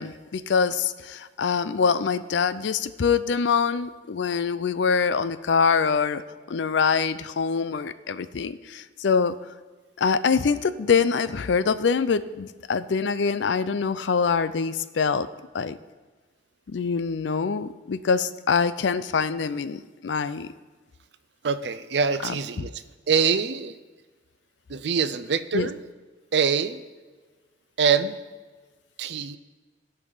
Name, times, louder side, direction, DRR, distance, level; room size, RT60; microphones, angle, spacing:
voice 1, 0.0-6.2 6.5-9.4 10.0-15.3 15.5-15.8 16.7-20.5 22.2-22.7 25.5-25.7, left 5 dB, 80° left, 14 dB, 0.5 m, -24 dB
voice 2, 21.4-23.8 24.7-25.8 26.3-26.8 27.8-28.2 29.0-29.4, right 6 dB, 70° right, 13 dB, 0.5 m, -24 dB
17.0 x 5.6 x 4.0 m, 1.3 s
head